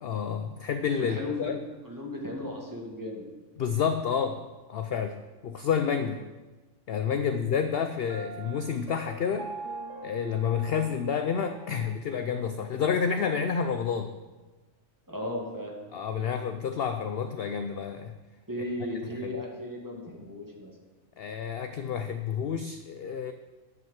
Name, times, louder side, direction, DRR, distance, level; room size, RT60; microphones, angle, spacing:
voice 1, 0.0-1.6 3.6-5.2 5.4-6.2 6.9-9.5 10.0-14.1 15.9-18.1 18.6-18.7 19.1-19.3 21.2-23.3, left 7 dB, 60° left, 8 dB, 0.7 m, -29 dB
voice 2, 1.0-3.2 7.2-7.3 15.1-15.8 18.5-20.7, left 1 dB, 15° right, -1 dB, 1.8 m, -36 dB
Piano, 8.1-12.0, right 3 dB, 65° right, 1.4 m, -43 dB
10.5 x 5.9 x 7.3 m, 1.2 s
omnidirectional pair, 1.4 m